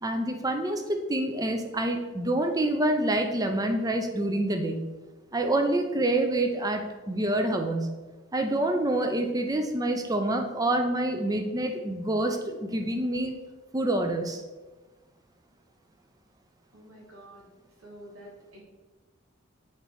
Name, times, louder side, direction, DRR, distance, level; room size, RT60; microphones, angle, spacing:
voice 1, 0.0-4.9 5.3-7.9 8.3-13.3 13.7-14.4, right 1 dB, 20° right, 5 dB, 0.6 m, -27 dB
voice 2, 16.7-17.5 17.8-18.6, right 1 dB, 85° right, -2 dB, 2.1 m, -48 dB
7.4 x 3.9 x 4.7 m, 1.2 s
head